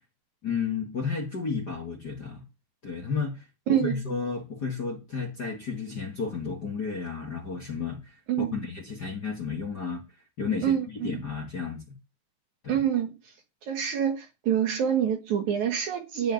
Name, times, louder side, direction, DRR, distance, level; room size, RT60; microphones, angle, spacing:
voice 1, 0.4-2.4 2.8-3.4 3.7-8.0 8.4-10.0 10.4-11.8 12.6-12.8, left 5 dB, 35° left, 1.9 m, -32 dB
voice 2, 3.7-4.0 8.3-8.6 10.6-11.2 12.7-13.1 13.6-16.3, right 9 dB, 60° right, 2.4 m, -26 dB
14.0 x 5.2 x 9.4 m
omnidirectional pair, 4.4 m